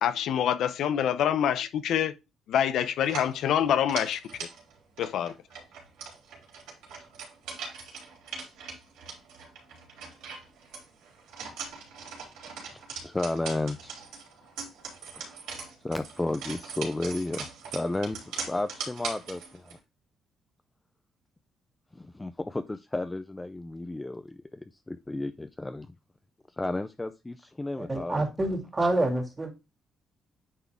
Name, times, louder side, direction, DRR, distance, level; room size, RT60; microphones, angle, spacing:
voice 1, 0.0-2.1 2.5-4.2 5.0-5.3, left 9 dB, 80° left, 0.6 m, -26 dB
sound 1, 3.0-19.8, right 5 dB, 90° right, 3.4 m, -41 dB
voice 2, 12.7-13.9 15.1-15.4 15.8-19.8 21.9-25.9 26.5-28.2, left 2 dB, 15° left, 0.5 m, -33 dB
voice 3, 27.8-29.5, right 2 dB, 25° right, 2.3 m, -27 dB
9.7 x 3.6 x 3.5 m
cardioid pair, 90°, 0 cm